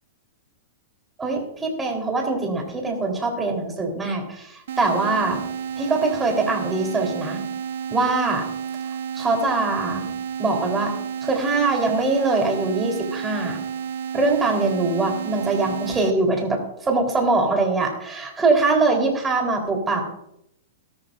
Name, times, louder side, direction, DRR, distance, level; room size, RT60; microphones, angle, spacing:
voice 1, 1.2-5.4 5.8-7.4 7.9-8.5 9.1-10.1 10.4-10.9 11.2-13.6 14.1-20.0, right 3 dB, 10° right, 0 dB, 3.9 m, -23 dB
sound 1, 4.7-16.1, right 7 dB, 75° right, 0.9 m, -31 dB
18.5 x 13.5 x 2.6 m, 0.77 s
hypercardioid pair, 140°, 0 cm